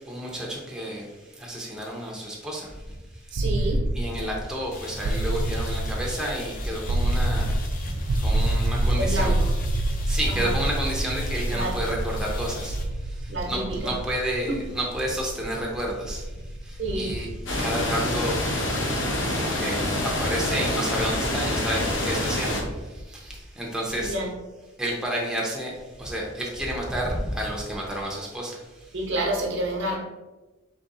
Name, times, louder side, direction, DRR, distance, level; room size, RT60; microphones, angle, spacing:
voice 1, 0.1-1.1 1.4-2.7 3.9-7.5 8.2-9.4 10.1-12.8 13.5-16.2 16.9-17.3 17.6-18.4 19.4-22.6 23.2-24.1 24.8-25.7 26.0-28.5, right 1 dB, 5° right, -3 dB, 0.7 m, -30 dB
voice 2, 3.3-3.8 8.3-8.4 8.7-9.5 10.3-10.5 11.5-11.8 13.3-13.9 14.5-14.6 16.8-17.2 24.0-24.4 28.9-30.0, right 1 dB, 65° right, 0 dB, 1.0 m, -29 dB
sound 1, 3.4-19.2, right 1 dB, 85° right, 0.4 m, -28 dB
sound 2, 4.7-12.8, left 3 dB, 45° left, 0.6 m, -40 dB
sound 3, 17.5-22.6, left 1 dB, 70° left, 1.0 m, -26 dB
4.1 x 3.0 x 3.8 m, 1.1 s
head